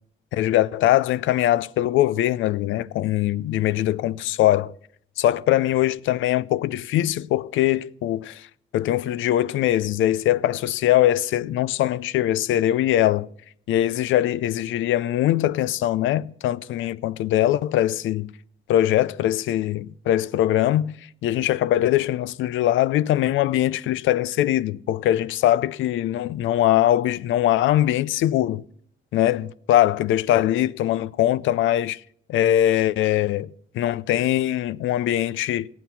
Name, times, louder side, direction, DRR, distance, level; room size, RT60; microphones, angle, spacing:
voice 1, 0.3-4.7 5.2-8.5 8.7-13.3 13.7-18.3 18.7-21.0 21.2-28.6 29.1-32.0 32.3-33.5 33.7-35.7, left 13 dB, 80° left, 0.4 m, -22 dB
13.5 x 9.2 x 5.7 m
cardioid pair, 90°, 20 cm